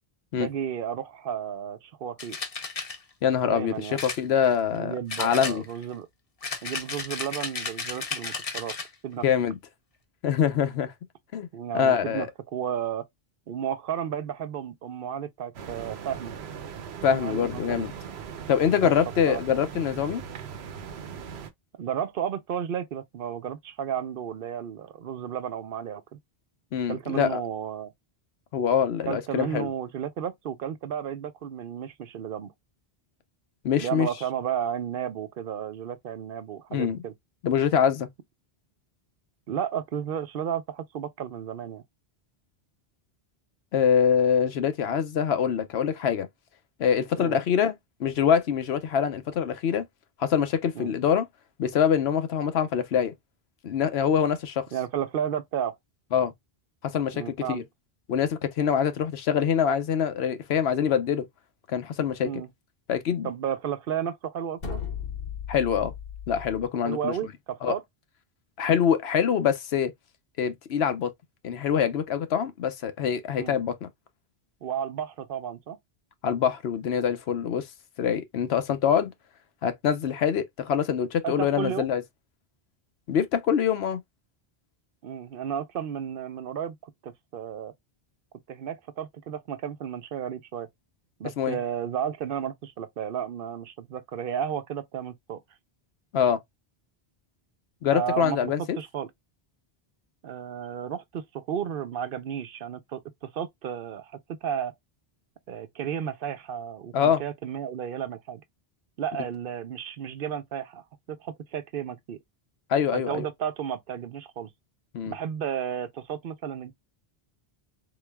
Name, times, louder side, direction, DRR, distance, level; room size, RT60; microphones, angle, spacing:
voice 1, 0.4-2.4 3.4-4.0 4.7-6.1 6.6-8.7 9.0-9.2 11.5-13.1 13.5-16.3 17.1-17.9 18.8-18.9 19.3-19.4 21.8-26.2 26.9-27.9 29.1-32.5 33.8-37.1 39.5-41.8 47.2-47.4 50.8-50.9 54.7-55.7 57.1-57.6 62.2-62.5 63.2-64.8 66.8-67.8 73.4-73.6 74.6-75.8 81.2-81.9 85.0-87.7 88.5-90.7 91.2-95.4 97.9-99.1 100.2-104.1 104.4-104.7 105.5-108.4 109.0-110.8 111.1-112.2 112.9-114.5 115.1-116.7, right 9 dB, 65° right, 0.7 m, -33 dB
sound 1, 2.2-3.0 4.0-4.8 5.1-5.9 6.4-8.9, left 4 dB, 40° left, 0.8 m, -34 dB
voice 2, 3.2-5.6 9.2-9.6 10.2-10.9 11.3-11.5 11.7-12.3 17.0-17.9 18.5-20.2 26.7-27.4 28.5-29.7 33.6-34.1 36.7-37.0 37.4-38.1 43.7-46.3 46.8-49.8 50.2-51.3 51.6-53.1 53.6-54.7 56.1-56.3 56.8-57.6 58.1-61.2 61.7-62.4 62.9-63.3 65.5-65.9 66.3-67.1 67.6-67.7 68.6-69.9 70.4-71.1 71.4-73.9 76.2-77.7 78.0-79.1 79.6-82.0 83.1-84.0 91.4-91.6 96.1-96.4 97.8-98.8 106.9-107.2 112.7-113.3 114.9-115.1, left 8 dB, 85° left, 0.9 m, -24 dB
sound 2, 15.5-21.5, right 7 dB, 90° right, 0.9 m, -39 dB
sound 3, 64.6-66.7, left 7 dB, 65° left, 1.1 m, -36 dB
4.0 x 3.1 x 2.2 m
omnidirectional pair, 1.0 m